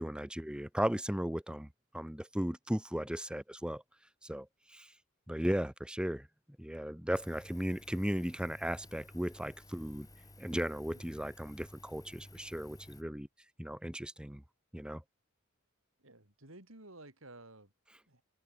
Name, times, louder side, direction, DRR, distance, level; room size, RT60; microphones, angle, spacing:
voice 1, 0.0-1.7 1.9-3.8 4.2-4.5 4.7-4.9 5.3-6.3 6.6-10.1 10.4-13.3 13.6-14.4 14.7-15.0, equal, 5° right, 1.4 m, -36 dB
Engine, 7.1-13.0, left 1 dB, 15° left, 3.4 m, -55 dB
voice 2, 16.0-17.7 18.1-18.2, right 2 dB, 70° right, 7.0 m, -54 dB
head